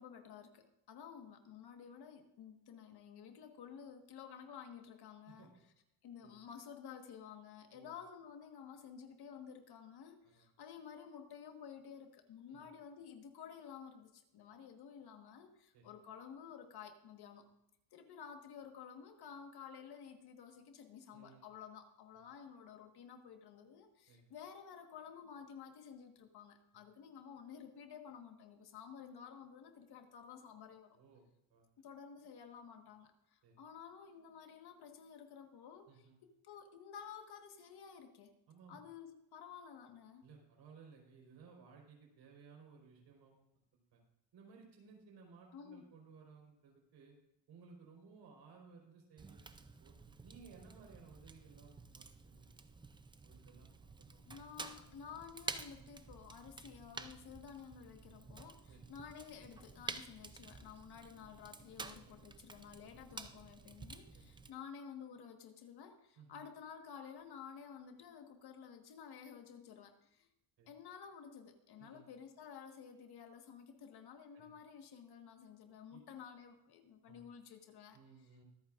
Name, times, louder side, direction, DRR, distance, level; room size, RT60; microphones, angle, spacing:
voice 1, 0.0-5.5 6.0-17.4 17.9-31.0 31.8-38.3 38.7-40.2 45.5-45.8 54.3-70.3 70.7-78.0, left 7 dB, 55° left, 5 dB, 1.5 m, -53 dB
voice 2, 21.1-21.4 24.1-24.2 30.9-31.2 31.5-31.7 33.4-33.6 35.9-36.2 38.5-38.8 40.2-43.5 43.7-44.0 44.3-47.1 47.5-49.9 50.2-52.7 53.2-54.2 58.1-58.2 58.7-58.9 64.1-64.3 66.2-66.5 70.6-70.7 71.8-72.0 74.3-74.5 75.9-76.0 77.1-77.2 77.9-78.4, right 5 dB, 60° right, 0 dB, 4.5 m, -60 dB
Fire, 49.2-64.5, right 4 dB, 10° right, 0.4 m, -51 dB
24.5 x 8.8 x 2.5 m, 0.86 s
cardioid pair, 150°, 46 cm